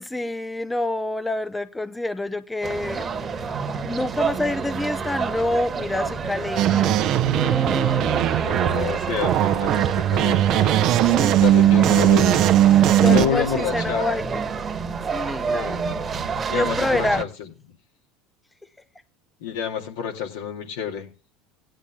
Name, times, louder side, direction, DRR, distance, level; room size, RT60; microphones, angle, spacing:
voice 1, 0.0-3.1 3.8-8.4 11.0-11.7 13.0-14.4 15.1-15.9 16.5-17.2, left 2 dB, 10° left, 0.6 m, -27 dB
sound 1, 2.6-17.2, right 5 dB, 25° right, 1.5 m, -29 dB
sound 2, 6.6-13.3, right 12 dB, 55° right, 0.8 m, -19 dB
voice 2, 8.3-12.4 13.0-14.2 15.5-15.8 16.5-17.3 19.4-21.1, left 8 dB, 80° left, 2.3 m, -28 dB
18.0 x 10.0 x 2.3 m
hypercardioid pair, 85°, 0 cm